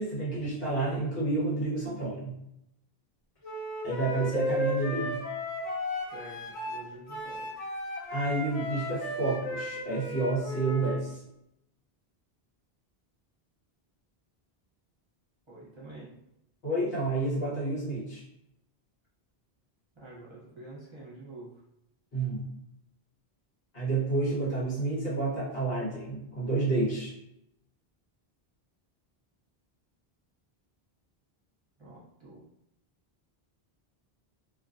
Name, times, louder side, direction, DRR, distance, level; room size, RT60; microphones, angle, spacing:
voice 1, 0.0-2.3 3.8-5.2 8.1-11.2 16.6-18.2 22.1-22.5 23.7-27.1, right 2 dB, 70° left, -8 dB, 1.3 m, -30 dB
Wind instrument woodwind instrument, 3.4-11.0, left 1 dB, 40° left, 1.2 m, -35 dB
voice 2, 6.1-7.4 15.5-16.1 19.9-21.5 31.8-32.4, right 2 dB, 30° right, -9 dB, 0.9 m, -47 dB
2.6 x 2.3 x 2.5 m, 0.81 s
omnidirectional pair, 1.0 m